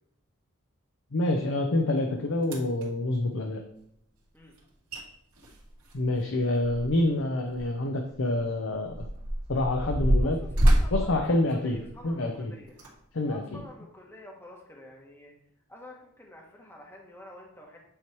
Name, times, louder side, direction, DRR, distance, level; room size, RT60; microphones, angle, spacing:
voice 1, 1.1-3.6 5.9-9.1 9.5-10.4 10.9-11.8 12.0-12.5 13.1-13.6, left 2 dB, 60° left, 4 dB, 0.6 m, -27 dB
sound 1, 2.0-2.1 2.4-2.9 4.6-4.7 4.9-5.0 5.4-7.2 7.5-7.6 8.3-12.1 12.7-12.9 13.5-13.6, equal, 90° right, 2.2 m, -27 dB
voice 2, 10.2-12.7 13.3-15.3 15.7-17.8, left 1 dB, 10° left, -1 dB, 1.0 m, -48 dB
8.8 x 3.1 x 4.5 m, 0.76 s
head